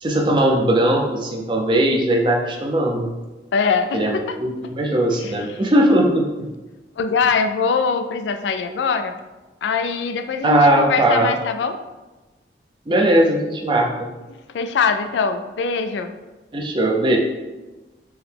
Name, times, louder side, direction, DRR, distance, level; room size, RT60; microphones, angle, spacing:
voice 1, 0.0-3.1 3.9-6.5 10.4-11.3 12.9-14.1 16.5-17.2, right 1 dB, 25° right, 1 dB, 0.5 m, -19 dB
voice 2, 3.5-4.4 5.2-5.4 7.0-9.1 9.6-11.8 14.5-16.1, left 5 dB, 90° left, 8 dB, 0.3 m, -22 dB
4.5 x 2.2 x 3.3 m, 1.1 s
head